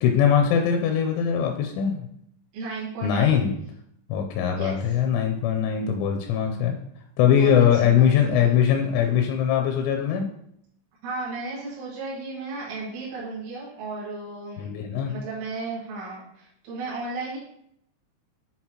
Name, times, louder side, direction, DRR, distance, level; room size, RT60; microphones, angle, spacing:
voice 1, 0.0-2.1 3.0-3.5 4.1-6.7 7.2-10.3 14.6-15.1, left 8 dB, 85° left, 3 dB, 2.9 m, -21 dB
voice 2, 2.5-3.4 4.5-5.0 7.3-8.5 11.0-14.7 15.1-17.4, right 3 dB, 75° right, -7 dB, 3.8 m, -34 dB
9.1 x 3.9 x 2.9 m, 0.71 s
omnidirectional pair, 5.4 m